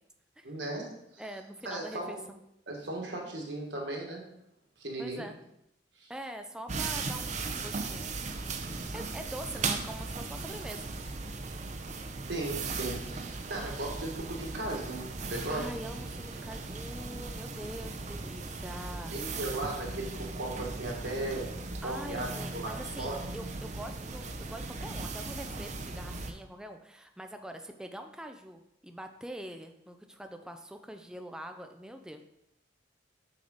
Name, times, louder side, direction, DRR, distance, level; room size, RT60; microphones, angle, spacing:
voice 1, 0.4-0.9 1.1-1.2 1.6-2.2 2.7-4.2 4.8-5.2 6.0-6.1 12.3-15.7 19.1-21.5 21.8-22.7 23.0-23.2, right 2 dB, 70° right, -1 dB, 1.8 m, -36 dB
voice 2, 1.2-2.4 5.0-5.4 6.1-8.1 8.9-10.9 15.5-19.2 21.8-32.2, right 1 dB, 5° right, 6 dB, 0.4 m, -44 dB
sound 1, 6.7-26.3, right 3 dB, 40° right, 0.7 m, -38 dB
6.8 x 6.7 x 4.0 m, 0.80 s
head